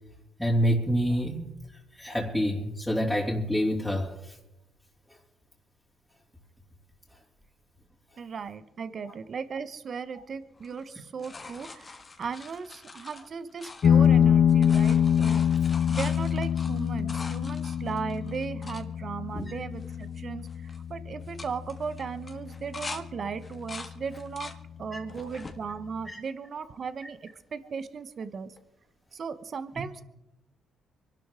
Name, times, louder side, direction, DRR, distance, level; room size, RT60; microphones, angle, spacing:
voice 1, 0.4-1.5 2.0-4.1 19.3-19.6 25.2-25.3 26.1-26.2, equal, 5° left, 3.0 m, -27 dB
voice 2, 8.2-15.5 15.9-24.5 24.8-28.5 29.1-30.0, right 5 dB, 50° right, 1.1 m, -37 dB
sound 1, 10.6-14.2 14.5-18.8 19.4-19.5 19.7-20.2 20.5-20.8 21.2-23.0 23.4-24.6 25.1-25.6 26.2-27.0 28.6-28.7, left 3 dB, 30° left, 1.6 m, -44 dB
sound 2, 13.8-22.9, left 8 dB, 55° left, 0.5 m, -25 dB
24.5 x 12.0 x 3.8 m
cardioid pair, 90°, 0 cm